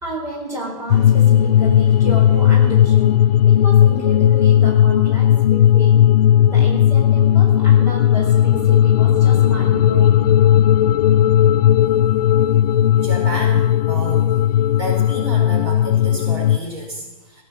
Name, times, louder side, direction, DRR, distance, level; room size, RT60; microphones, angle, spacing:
voice 1, 0.0-3.1 3.4-6.1 6.5-10.2, right 1 dB, 15° right, -3 dB, 4.6 m, -31 dB
sound 1, 0.9-16.6, left 11 dB, 80° left, 0.5 m, -15 dB
voice 2, 13.0-14.3 14.8-17.4, right 1 dB, 40° right, 1 dB, 4.6 m, -30 dB
18.0 x 9.8 x 7.5 m, 1.1 s
supercardioid pair, 170°, 20 cm